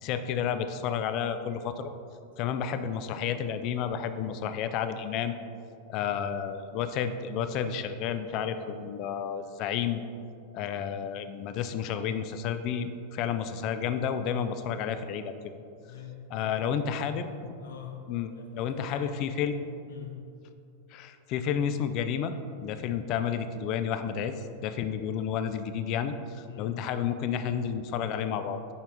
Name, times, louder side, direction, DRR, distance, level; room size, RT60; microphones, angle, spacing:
voice 1, 0.0-1.9 2.4-5.3 5.9-10.0 10.5-15.5 16.3-17.5 18.1-19.6 20.9-22.3 22.6-28.6, left 8 dB, 40° left, 10 dB, 0.4 m, -31 dB
voice 2, 15.9-17.1 17.6-18.0 18.3-19.3 19.9-20.2 26.5-26.7, left 7 dB, 60° left, 2 dB, 0.9 m, -45 dB
6.2 x 5.4 x 3.6 m, 2.5 s
figure-of-eight pair, 90°, 0 cm